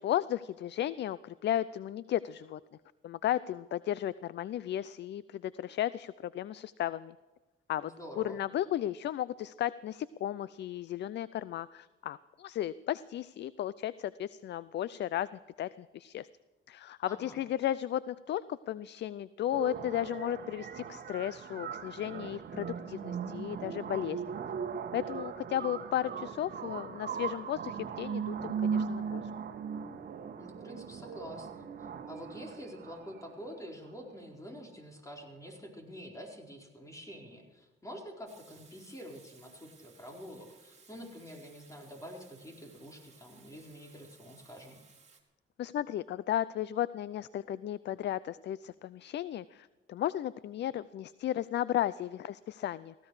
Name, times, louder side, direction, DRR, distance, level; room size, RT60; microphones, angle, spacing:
voice 1, 0.0-2.6 3.0-7.1 7.7-7.9 8.2-15.3 15.6-16.3 16.7-24.4 24.9-29.3 45.6-52.9, left 12 dB, 60° left, 18 dB, 0.5 m, -34 dB
voice 2, 7.8-8.4 17.0-17.4 30.4-31.7 32.1-44.8, equal, 15° left, 1 dB, 4.5 m, -47 dB
sound 1, 19.5-33.5, right 6 dB, 55° right, 1.5 m, -38 dB
Water tap faucet / Sink (filling or washing), 38.3-45.2, right 5 dB, 35° right, 3.1 m, -61 dB
18.0 x 16.5 x 4.8 m, 1.2 s
cardioid pair, 90°, 20 cm